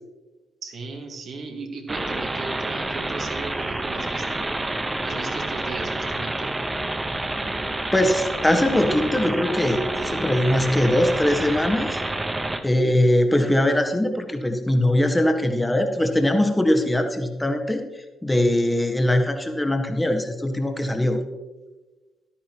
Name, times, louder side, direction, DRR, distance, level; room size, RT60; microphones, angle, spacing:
voice 1, 0.6-4.6 5.0-6.5, right 3 dB, 55° right, 2 dB, 2.0 m, -36 dB
sound 1, 1.9-12.6, right 2 dB, 20° right, 1.2 m, -28 dB
voice 2, 7.9-12.0 12.6-17.8 18.2-21.2, left 1 dB, 10° left, 5 dB, 1.7 m, -21 dB
12.5 x 11.5 x 3.1 m, 1.2 s
hypercardioid pair, 45°, 0 cm